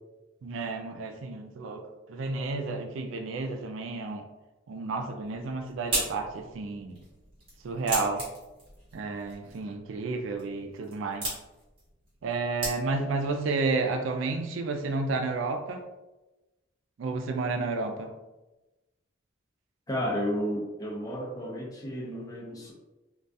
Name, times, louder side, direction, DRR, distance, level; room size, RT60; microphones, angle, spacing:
voice 1, 0.4-1.8 2.1-4.3 4.7-7.0 7.6-8.2 8.9-11.3 12.2-15.8 17.0-18.1, right 3 dB, 80° right, 5 dB, 0.3 m, -31 dB
sound 1, 5.2-13.2, right 1 dB, 25° right, 1.0 m, -38 dB
voice 2, 19.9-22.7, equal, 20° left, -1 dB, 0.4 m, -32 dB
2.2 x 2.2 x 2.6 m, 1.1 s
head